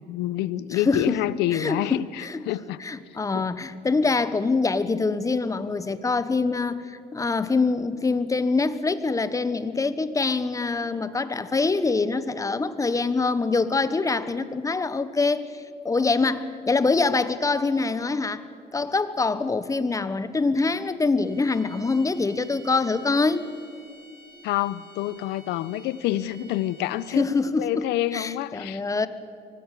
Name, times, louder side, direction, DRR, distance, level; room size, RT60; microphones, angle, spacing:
voice 1, 0.1-2.8 3.3-3.4 24.4-27.3 27.6-28.8, left 14 dB, 90° left, 18 dB, 0.8 m, -27 dB
voice 2, 0.7-1.2 1.5-2.4 2.8-18.4 18.7-23.5 27.1-27.9 28.1-29.1, left 3 dB, 20° left, 13 dB, 1.1 m, -24 dB
sound 1, 21.2-27.5, right 1 dB, 60° right, 2.9 m, -51 dB
24.5 x 18.5 x 8.4 m, 2.4 s
cardioid pair, 110°, 17 cm